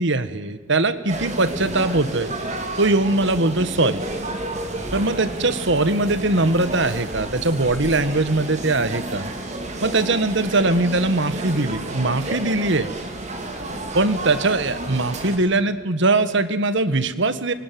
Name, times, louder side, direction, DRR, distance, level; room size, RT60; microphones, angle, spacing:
voice 1, 0.0-2.3 2.8-4.0 4.9-9.3 9.8-12.9 13.9-17.5, right 2 dB, 60° right, 13 dB, 1.5 m, -21 dB
sound 1, 1.1-15.4, right 1 dB, 35° right, 3.3 m, -31 dB
26.5 x 24.0 x 9.4 m, 1.3 s
head